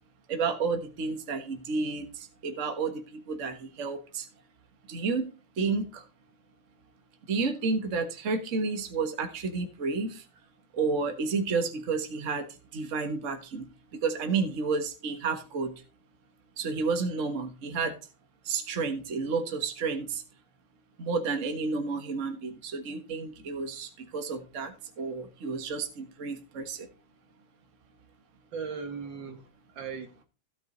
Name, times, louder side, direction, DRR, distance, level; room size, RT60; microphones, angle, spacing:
voice 1, 0.3-4.3 4.9-5.3 5.6-6.0 7.3-10.2 10.7-12.5 12.7-13.7 13.9-15.7 16.6-18.0 18.4-20.2 21.0-26.9, right 4 dB, 40° right, 1.6 m, -31 dB
voice 2, 28.5-30.2, right 5 dB, 65° right, 2.1 m, -38 dB
15.5 x 5.4 x 3.9 m
omnidirectional pair, 2.2 m